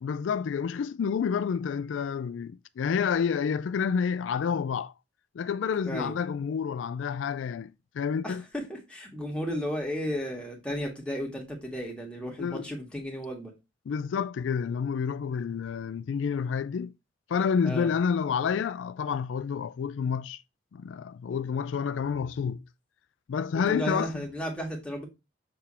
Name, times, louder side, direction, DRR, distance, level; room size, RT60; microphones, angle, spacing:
voice 1, 0.0-4.9 5.3-7.7 7.9-8.4 12.4-12.7 13.9-16.9 17.3-20.4 20.7-22.6 23.3-24.2, left 6 dB, 85° left, 0.3 m, -29 dB
voice 2, 5.9-6.2 8.2-13.5 17.6-17.9 23.5-25.1, equal, 5° left, 2.0 m, -34 dB
7.0 x 3.5 x 4.3 m
head